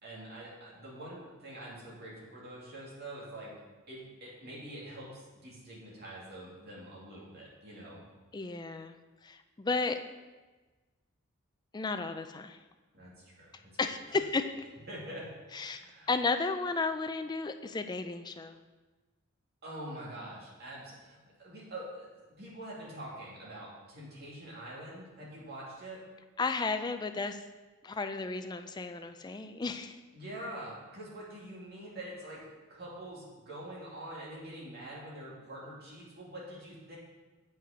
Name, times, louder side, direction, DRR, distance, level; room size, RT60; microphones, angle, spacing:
voice 1, 0.0-3.6 3.9-8.0 12.9-14.0 14.9-15.3 15.7-16.1 19.6-22.1 22.4-26.0 30.1-37.0, right 1 dB, 50° right, -5 dB, 2.5 m, -45 dB
voice 2, 8.3-9.0 9.2-10.0 11.7-12.6 13.8-14.7 15.5-15.8 16.1-18.6 26.4-27.4 27.8-30.0, left 3 dB, 20° left, 8 dB, 0.4 m, -33 dB
7.7 x 5.4 x 5.0 m, 1.3 s
head